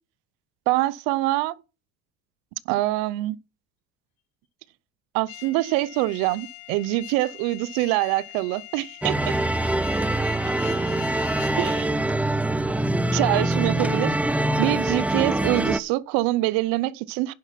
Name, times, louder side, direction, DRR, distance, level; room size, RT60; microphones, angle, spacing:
voice 1, 0.7-1.5 2.7-3.4 5.1-9.3 11.6-11.9 13.1-17.3, right 18 dB, 80° right, 0.7 m, -25 dB
sound 1, 5.3-11.9, left 20 dB, 85° left, 1.1 m, -42 dB
sound 2, 9.0-15.8, right 1 dB, 5° right, 0.5 m, -24 dB
voice 2, 9.8-12.3, left 4 dB, 65° left, 6.2 m, -50 dB
10.5 x 5.8 x 5.8 m
supercardioid pair, 105°, 34 cm